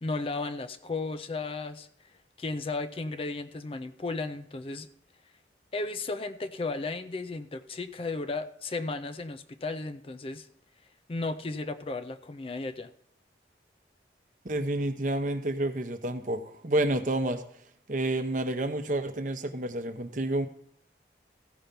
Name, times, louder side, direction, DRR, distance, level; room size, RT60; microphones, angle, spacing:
voice 1, 0.0-1.9 2.4-4.9 5.7-10.5 11.1-12.9, left 3 dB, 30° left, 11 dB, 0.4 m, -34 dB
voice 2, 14.4-17.4 17.9-20.5, right 1 dB, 45° right, 8 dB, 0.8 m, -29 dB
15.0 x 5.7 x 5.2 m, 0.65 s
head